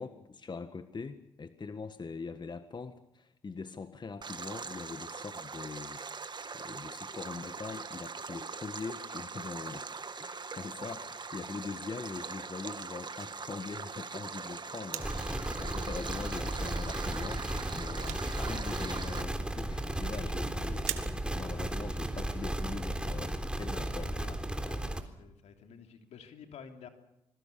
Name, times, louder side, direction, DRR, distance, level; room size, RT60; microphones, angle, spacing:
voice 1, 0.0-6.0 6.5-9.9 10.2-24.1, left 4 dB, 40° left, 9 dB, 1.7 m, -42 dB
Stream, 4.2-19.2, right 4 dB, 40° right, 1.9 m, -42 dB
sound 1, 14.9-15.4 16.2-16.3 16.9-17.0 17.2-17.3 17.6-18.6 18.9-19.0 20.3-20.4 20.9-21.5 22.0-22.1, right 14 dB, 85° right, 1.6 m, -40 dB
sound 2, 15.0-25.0, right 1 dB, 10° right, 3.7 m, -35 dB
voice 2, 23.7-26.9, left 6 dB, 70° left, 5 dB, 3.1 m, -51 dB
26.0 x 21.5 x 7.0 m, 0.83 s
hypercardioid pair, 45°, 12 cm